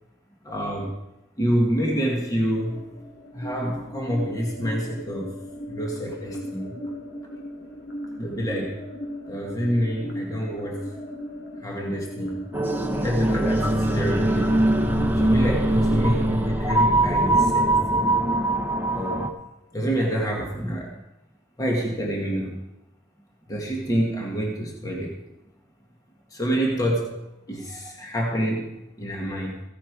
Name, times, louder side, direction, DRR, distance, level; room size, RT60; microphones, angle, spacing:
voice 1, 0.4-1.0 1.4-2.9 3.3-5.4 5.7-6.8 8.2-8.8 9.3-10.9 11.6-12.4 13.0-14.6 15.1-18.2 18.9-19.3 19.7-21.0 21.6-22.6 23.5-25.2 26.3-27.2 27.5-29.6, equal, 20° left, -1 dB, 1.9 m, -27 dB
sound 1, 2.6-17.6, equal, 80° left, 2.6 m, -37 dB
sound 2, 12.5-19.3, right 1 dB, 10° right, 1.0 m, -22 dB
15.5 x 9.0 x 4.7 m, 0.94 s
head